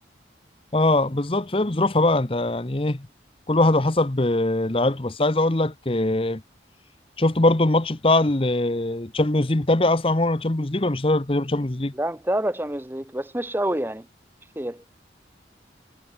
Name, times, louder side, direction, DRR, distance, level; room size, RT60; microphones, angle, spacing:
voice 1, 0.7-3.1 3.5-6.4 7.2-11.9, left 2 dB, 30° left, 0.9 m, -22 dB
voice 2, 11.9-14.1 14.6-14.8, right 1 dB, 10° right, 0.9 m, -27 dB
head